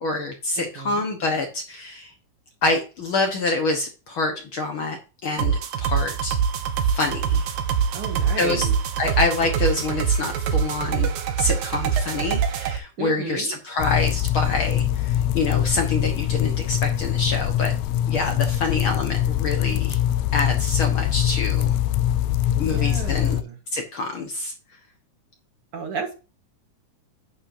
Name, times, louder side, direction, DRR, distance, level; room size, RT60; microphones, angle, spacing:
voice 1, 0.0-2.1 2.6-6.4 6.8-7.5 8.4-8.7 9.0-11.1 11.4-17.7 18.1-20.0 20.3-21.8 22.6-23.4 23.7-24.5, left 3 dB, 55° left, 3 dB, 1.7 m, -26 dB
voice 2, 0.6-1.1 7.9-8.7 13.0-13.6 22.6-23.6 25.7-26.1, right 5 dB, 55° right, 4 dB, 2.0 m, -32 dB
sound 1, 5.4-12.8, right 7 dB, 75° right, 2.5 m, -24 dB
sound 2, 13.8-23.4, left 11 dB, 80° left, 1.7 m, -23 dB
9.8 x 8.7 x 2.7 m, 0.32 s
omnidirectional pair, 3.5 m